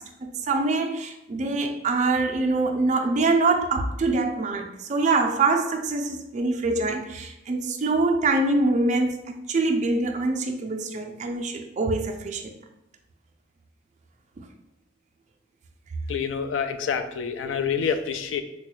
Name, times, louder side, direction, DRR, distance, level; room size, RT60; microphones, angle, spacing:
voice 1, 0.0-12.5 14.4-14.5 17.4-17.6, right 3 dB, 40° right, 4 dB, 0.4 m, -24 dB
voice 2, 16.1-18.4, left 6 dB, 85° left, 9 dB, 0.3 m, -27 dB
3.9 x 2.2 x 3.1 m, 0.91 s
head